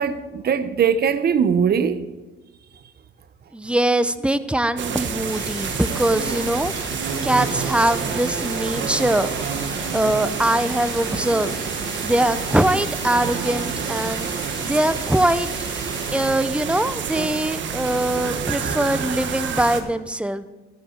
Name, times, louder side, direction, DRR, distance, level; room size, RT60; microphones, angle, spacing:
voice 1, 0.0-2.0, right 7 dB, 55° right, 1.0 m, -20 dB
voice 2, 3.5-6.7 7.2-9.3 9.9-11.6 12.0-14.3 14.6-15.5 16.1-20.5, right 1 dB, 5° right, 0.7 m, -22 dB
sound 1, 4.8-19.8, right 7 dB, 70° right, 1.4 m, -28 dB
sound 2, 5.3-16.3, left 2 dB, 20° left, 2.2 m, -37 dB
13.0 x 12.5 x 4.5 m
cardioid pair, 90°, 20 cm